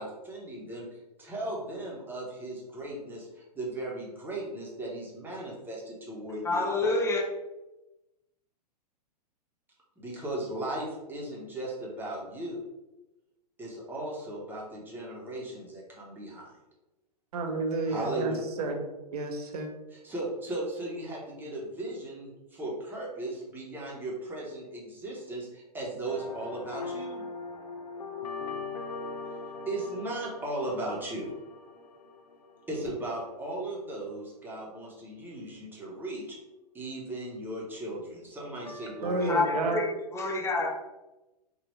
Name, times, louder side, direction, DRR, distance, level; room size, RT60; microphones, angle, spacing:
voice 1, 0.0-6.7 10.0-12.6 13.6-16.5 17.9-18.4 19.9-27.3 29.7-31.3 32.7-36.4 36.7-39.4, right 1 dB, 10° right, -4 dB, 1.1 m, -37 dB
voice 2, 6.4-7.3 39.3-40.7, left 3 dB, 15° left, 1 dB, 0.6 m, -28 dB
voice 3, 17.3-18.8 19.1-19.7 39.0-39.9, right 3 dB, 65° right, 3 dB, 0.8 m, -30 dB
sound 1, 26.1-33.3 38.7-39.6, left 4 dB, 70° left, 0.6 m, -41 dB
4.8 x 2.6 x 3.2 m, 1.0 s
figure-of-eight pair, 110°, 21 cm